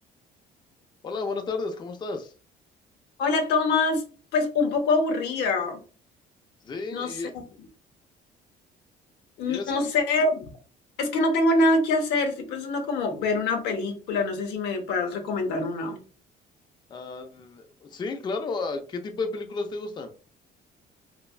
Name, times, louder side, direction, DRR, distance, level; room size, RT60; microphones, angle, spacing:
voice 1, 1.0-2.3 6.6-7.3 9.4-9.9 16.9-20.1, left 3 dB, 25° left, 6 dB, 0.4 m, -32 dB
voice 2, 3.2-4.0 4.3-5.8 6.9-7.4 9.4-10.5 11.0-16.0, left 2 dB, 85° left, 5 dB, 0.7 m, -25 dB
3.2 x 2.2 x 2.3 m, 0.37 s
cardioid pair, 110°, 17 cm